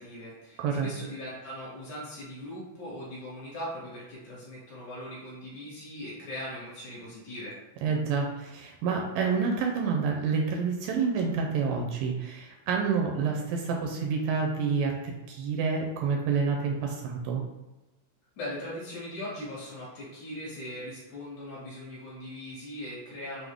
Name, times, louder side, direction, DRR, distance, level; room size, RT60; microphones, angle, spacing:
voice 1, 0.0-7.6 18.4-23.5, left 1 dB, 70° left, -6 dB, 2.1 m, -40 dB
voice 2, 7.8-15.0 15.3-17.4, right 5 dB, 80° right, 0 dB, 2.1 m, -28 dB
6.0 x 2.0 x 3.4 m, 1.1 s
omnidirectional pair, 4.1 m